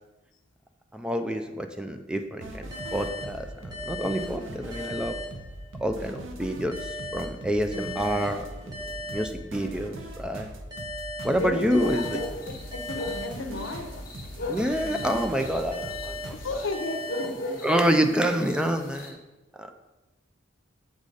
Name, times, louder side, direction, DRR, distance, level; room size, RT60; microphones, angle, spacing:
voice 1, 0.9-5.2 5.8-8.5 9.1-10.5 11.2-12.2 14.5-16.6 17.6-19.2 19.5-19.7, equal, 5° right, 6 dB, 0.3 m, -28 dB
sound 1, 2.4-16.5, right 1 dB, 70° right, 0.8 m, -40 dB
sound 2, 2.7-6.0 6.7-10.0 10.7-14.0 14.7-18.0, left 2 dB, 20° right, 1.2 m, -39 dB
voice 2, 11.2-12.1 12.5-14.0 14.4-14.6 16.3-18.0, left 2 dB, 70° left, 6 dB, 0.7 m, -34 dB
sound 3, 11.8-19.1, left 1 dB, 45° left, 1.2 m, -38 dB
7.4 x 4.9 x 3.9 m, 1.1 s
head